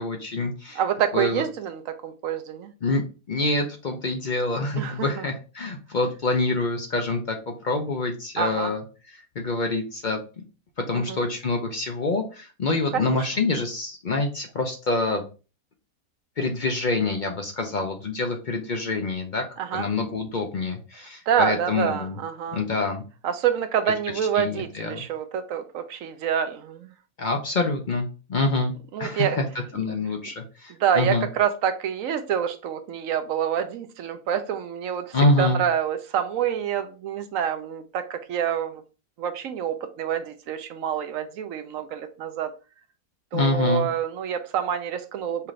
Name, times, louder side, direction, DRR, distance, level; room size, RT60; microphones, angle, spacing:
voice 1, 0.0-0.8 1.1-1.4 2.8-3.0 3.3-10.2 10.9-15.2 16.4-19.4 19.7-22.2 22.5-23.0 24.3-25.0 27.2-28.7 29.0-29.5 29.7-31.3 35.1-35.6 43.3-43.9, left 2 dB, 50° left, 0.5 m, -26 dB
voice 2, 0.8-2.7 4.8-5.2 8.4-8.7 11.1-11.2 12.9-13.2 19.6-19.9 21.3-22.6 23.2-26.9 28.9-29.4 30.8-38.8 39.2-42.5 43.3-45.5, right 8 dB, 70° right, 1.0 m, -27 dB
5.7 x 2.5 x 3.1 m
omnidirectional pair, 1.6 m